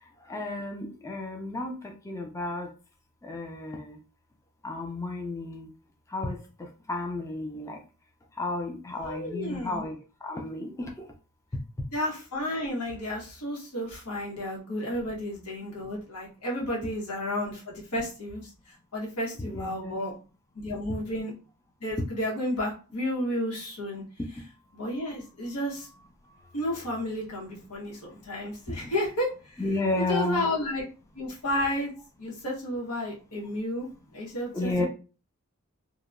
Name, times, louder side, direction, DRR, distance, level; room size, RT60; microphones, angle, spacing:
voice 1, 0.3-2.7 3.2-4.0 4.6-5.7 6.1-6.4 6.9-7.8 8.4-11.1 19.4-20.0 29.6-30.5 34.5-34.9, left 2 dB, 15° left, 0.3 m, -32 dB
voice 2, 9.0-9.9 11.9-20.1 20.5-21.3 21.8-24.0 24.7-25.9 26.5-29.6 30.0-30.8 31.1-31.9 32.2-34.9, left 1 dB, 85° left, 1.0 m, -32 dB
2.8 x 2.0 x 2.4 m
head